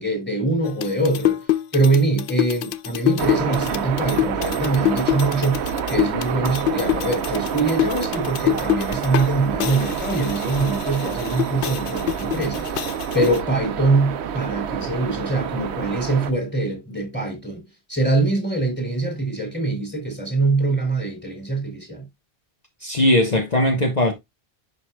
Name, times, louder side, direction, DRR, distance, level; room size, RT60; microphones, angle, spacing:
voice 1, 0.0-1.4 1.7-12.7 13.1-17.6 17.9-22.1, right 3 dB, 10° left, 2.9 m, -23 dB
sound 1, 0.6-9.3 9.6-13.4, left 13 dB, 65° left, 0.7 m, -26 dB
sound 2, 3.2-16.3, right 8 dB, 85° right, 1.0 m, -28 dB
voice 2, 22.8-24.1, left 1 dB, 40° left, 1.2 m, -19 dB
11.0 x 5.1 x 2.2 m
omnidirectional pair, 1.1 m